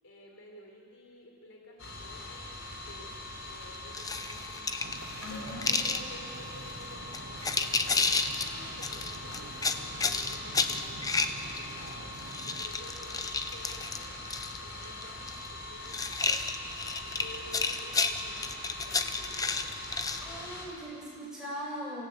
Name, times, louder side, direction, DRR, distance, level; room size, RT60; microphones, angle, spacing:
voice 1, 0.0-2.5 2.8-4.7 5.3-14.0 14.6-16.0 17.0-19.6, left 1 dB, 90° left, 0 dB, 4.1 m, -51 dB
sound 1, 1.8-20.6, left 2 dB, 65° left, 4.1 m, -42 dB
sound 2, 3.9-6.0 6.7-6.8 7.1-8.5 8.8-11.9 12.2-14.6 14.8-15.5 15.9-20.2, left 4 dB, 15° left, 0.7 m, -31 dB
Wind / Ocean, 4.8-12.7, right 3 dB, 65° right, 0.8 m, -48 dB
voice 2, 5.2-5.8 20.2-22.1, equal, 5° right, -6 dB, 6.5 m, -40 dB
25.5 x 15.5 x 8.4 m, 2.4 s
head